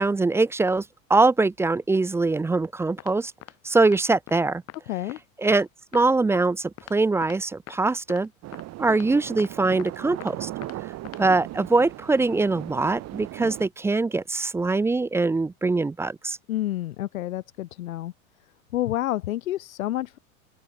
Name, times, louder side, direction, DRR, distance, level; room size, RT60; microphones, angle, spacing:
voice 1, 0.0-3.3 3.6-4.6 5.4-5.7 5.9-8.3 8.8-10.5 11.2-16.4, right 3 dB, 5° right, 0.5 m, -23 dB
sound 1, 3.0-3.1 3.4-3.5 3.8-4.0 4.3-4.4 4.7-4.8 5.1-5.2 5.5-5.6 5.9-6.0 6.3-6.4 6.8-6.9 7.2-7.4 7.7-7.8 8.1-8.2 8.5-8.6 8.9-9.0 9.4-9.5 9.8-10.3 10.6-10.7 11.0-11.2, left 15 dB, 35° left, 3.2 m, -42 dB
voice 2, 4.9-5.2 16.5-18.1 18.7-20.2, left 14 dB, 80° left, 3.3 m, -29 dB
sound 2, 8.4-13.7, right 16 dB, 40° right, 4.3 m, -37 dB
open air
supercardioid pair, 125°, 40 cm